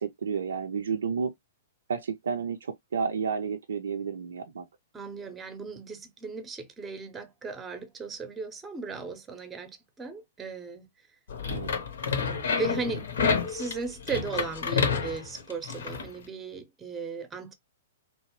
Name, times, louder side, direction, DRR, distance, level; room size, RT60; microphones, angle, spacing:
voice 1, 0.0-1.3 1.9-4.7 11.5-11.7, right 6 dB, 75° right, 0.4 m, -31 dB
voice 2, 4.9-10.9 12.6-13.1 13.5-17.5, right 4 dB, 15° right, 0.6 m, -36 dB
sound 1, 11.3-16.1, left 5 dB, 70° left, 0.8 m, -29 dB
2.8 x 2.1 x 2.9 m
hypercardioid pair, 115°, 0 cm